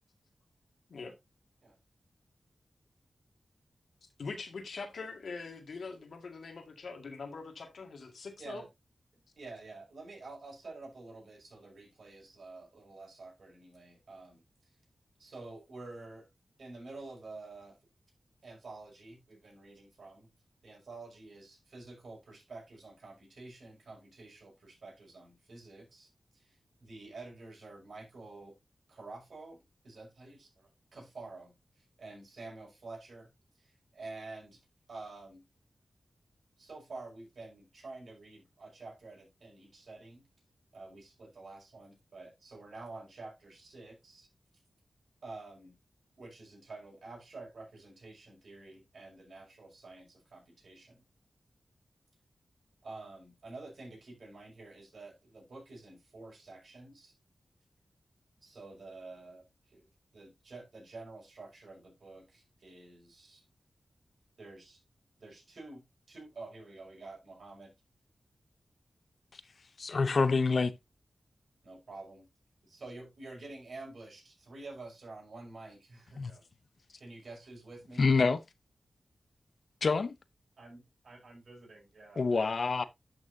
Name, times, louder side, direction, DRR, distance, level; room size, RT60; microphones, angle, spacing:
voice 1, 4.2-8.6, left 4 dB, 85° left, 1.8 m, -43 dB
voice 2, 9.4-14.4 15.2-16.3 16.6-17.8 18.4-20.3 20.6-28.6 28.9-33.3 33.6-34.6 34.9-35.4 36.6-40.2 40.7-44.3 45.2-45.8 46.2-51.0 52.8-57.1 58.4-59.9 60.1-63.4 64.4-64.8 65.2-67.7 71.6-72.3 72.6-76.4 77.0-78.1 80.6-82.9, right 3 dB, 70° right, 5.6 m, -49 dB
voice 3, 69.8-70.7 76.2-76.3 78.0-78.4 79.8-80.1 82.2-82.8, left 4 dB, 60° left, 0.6 m, -27 dB
11.0 x 6.1 x 2.7 m
wide cardioid pair, 80°, 0 cm